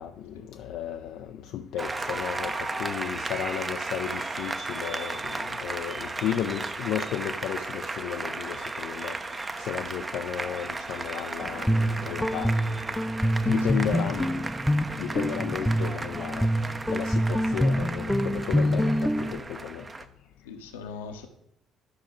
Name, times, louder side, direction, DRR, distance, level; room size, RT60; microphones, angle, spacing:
voice 1, 0.0-12.6 13.5-14.4 15.0-19.9, left 10 dB, 65° left, 0.4 m, -34 dB
Applause, 1.8-20.1, right 3 dB, 25° right, 0.8 m, -35 dB
Guitar, 11.4-19.4, equal, 5° left, 0.6 m, -26 dB
voice 2, 13.4-14.3 20.4-21.3, left 5 dB, 80° left, 1.0 m, -41 dB
11.5 x 5.9 x 3.8 m
figure-of-eight pair, 50°, 0 cm